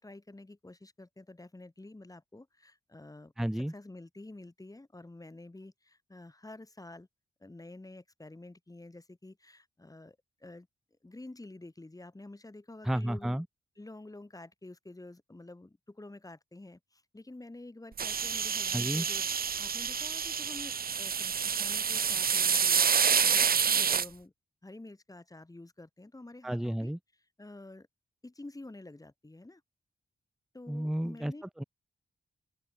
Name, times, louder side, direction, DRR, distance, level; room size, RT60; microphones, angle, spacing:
voice 1, 0.0-7.1 7.4-10.7 11.0-13.4 13.8-19.2 19.6-22.8 23.2-24.3 24.6-26.9 27.4-27.9 28.2-29.6 30.5-31.4, left 2 dB, 20° left, 2.8 m, -49 dB
voice 2, 3.4-3.7 12.8-13.5 18.7-19.1 26.4-27.0 30.7-31.3 31.6-31.7, right 1 dB, ahead, 0.4 m, -32 dB
sound 1, 18.0-24.1, right 6 dB, 50° right, 0.9 m, -28 dB
open air
cardioid pair, 70°, 19 cm